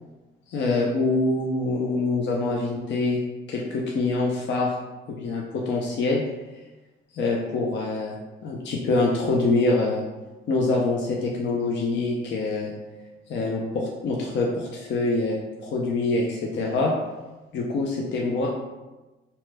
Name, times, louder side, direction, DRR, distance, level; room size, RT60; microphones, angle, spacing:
voice 1, 0.5-3.2 3.5-4.7 5.1-6.2 7.1-8.1 8.4-10.0 10.5-12.7 13.3-16.9 17.5-18.5, left 3 dB, 65° left, -2 dB, 0.5 m, -25 dB
2.8 x 2.1 x 3.3 m, 1.1 s
cardioid pair, 90°, 20 cm